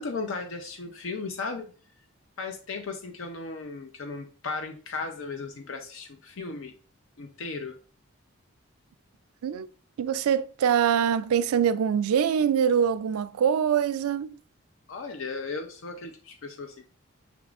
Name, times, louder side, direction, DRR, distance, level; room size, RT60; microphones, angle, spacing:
voice 1, 0.0-1.7 2.4-6.7 7.2-7.8 14.9-16.9, left 4 dB, 65° left, 0.5 m, -36 dB
voice 2, 10.0-14.3, right 8 dB, 85° right, 0.3 m, -24 dB
5.9 x 3.5 x 2.4 m
head